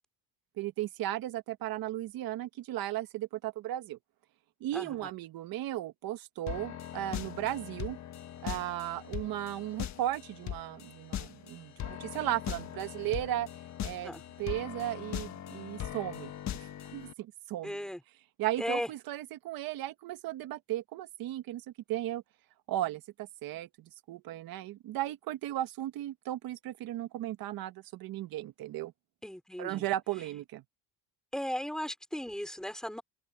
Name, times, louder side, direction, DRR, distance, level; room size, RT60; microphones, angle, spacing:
voice 1, 0.6-4.0 4.6-8.0 8.4-13.5 13.8-14.1 14.4-16.3 16.6-17.8 18.4-21.6 21.9-22.2 22.7-28.9 29.6-30.6, right 14 dB, 65° right, 1.6 m, -36 dB
voice 2, 4.7-5.1 14.0-14.2 17.6-18.0 18.6-18.9 29.2-29.8 31.3-33.0, equal, ahead, 4.4 m, -36 dB
sound 1, 6.5-17.1, left 11 dB, 45° left, 1.6 m, -40 dB
open air
cardioid pair, 140°, 38 cm